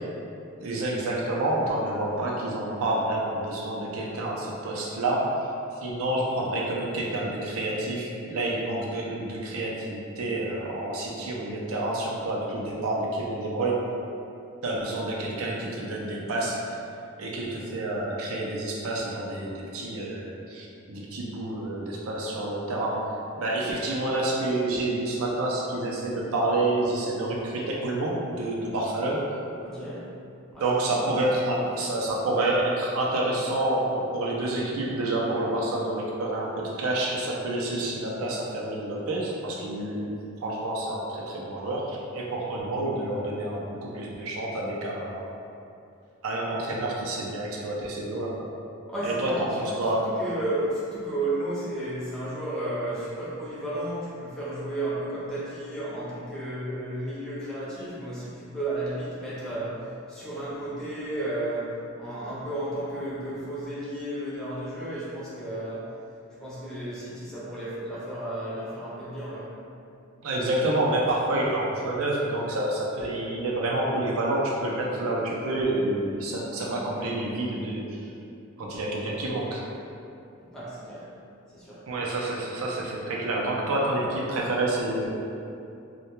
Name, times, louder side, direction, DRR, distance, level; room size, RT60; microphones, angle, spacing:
voice 1, 0.6-5.3 5.8-13.9 14.6-16.7 17.2-29.2 30.6-40.2 40.4-45.3 46.2-48.5 49.0-50.1 70.2-78.1 78.6-79.6 81.9-85.1, right 1 dB, 85° right, -3 dB, 0.4 m, -28 dB
voice 2, 29.6-30.1 30.5-31.0 31.2-31.8 48.9-65.9 66.4-69.6 80.4-81.1 81.5-81.9, right 1 dB, 5° left, -11 dB, 0.5 m, -33 dB
2.2 x 2.2 x 2.9 m, 2.6 s
head